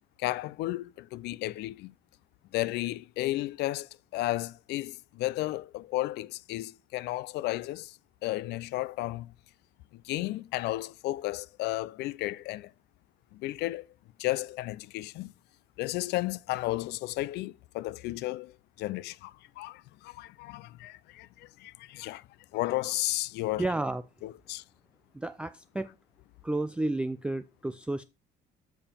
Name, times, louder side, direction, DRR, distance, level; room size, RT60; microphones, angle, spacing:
voice 1, 0.2-1.9 2.5-8.0 8.2-9.3 10.0-12.7 13.3-13.9 14.2-15.3 15.8-18.5 18.8-22.2 22.5-23.6 24.2-24.6, left 17 dB, 80° left, 0.4 m, -33 dB
voice 2, 23.6-24.0 25.1-25.9 26.4-28.0, right 2 dB, 5° right, 0.3 m, -31 dB
7.0 x 5.4 x 4.3 m
cardioid pair, 110°, 17 cm